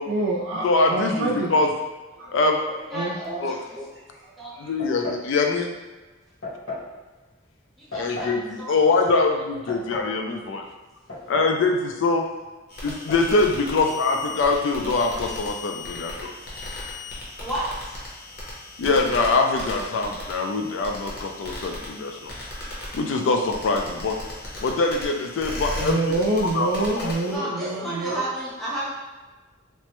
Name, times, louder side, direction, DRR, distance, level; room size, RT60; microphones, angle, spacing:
voice 1, 0.1-1.5 2.2-2.3 2.9-3.2 4.5-4.7 25.5-28.2, right 2 dB, 65° right, -2 dB, 0.3 m, -26 dB
voice 2, 0.6-1.7 2.3-2.6 3.4-3.6 4.6-5.7 7.9-10.6 11.3-12.3 12.8-16.3 18.8-22.3 22.9-24.2 24.6-26.0 26.5-26.7 27.0-27.1, left 3 dB, 65° left, 3 dB, 0.3 m, -23 dB
voice 3, 2.7-3.9 4.4-4.8 7.8-8.8 17.4-18.0 27.3-28.9, right 1 dB, ahead, -8 dB, 0.6 m, -32 dB
sound 1, 4.8-5.3 6.4-6.9 7.9-8.4 9.4-10.1 11.1-11.6 11.9-12.0 12.9-13.3, left 3 dB, 85° left, 1.4 m, -34 dB
sound 2, 12.7-27.4, left 1 dB, 50° left, 0.7 m, -37 dB
3.2 x 2.1 x 2.9 m, 1.2 s
head